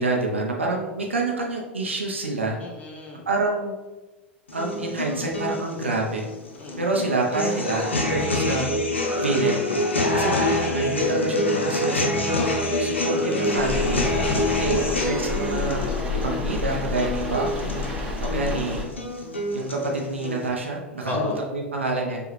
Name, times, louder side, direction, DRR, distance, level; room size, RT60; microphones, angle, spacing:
voice 1, 0.0-2.6 3.3-3.8 4.5-6.2 6.8-8.7 9.1-9.6 10.1-12.2 12.8-14.1 14.6-15.9 16.1-17.8 18.2-18.9 19.5-22.2, right 2 dB, 80° right, -1 dB, 0.6 m, -27 dB
voice 2, 2.6-3.2 6.6-6.9 10.3-10.6 14.2-15.0 17.9-18.3 21.0-21.4, left 3 dB, 25° left, 0 dB, 0.8 m, -34 dB
sound 1, 4.5-20.5, left 1 dB, 80° left, 0.6 m, -26 dB
sound 2, 13.5-18.8, left 3 dB, 15° right, 1.1 m, -29 dB
4.9 x 2.4 x 3.1 m, 1.2 s
figure-of-eight pair, 85°, 6 cm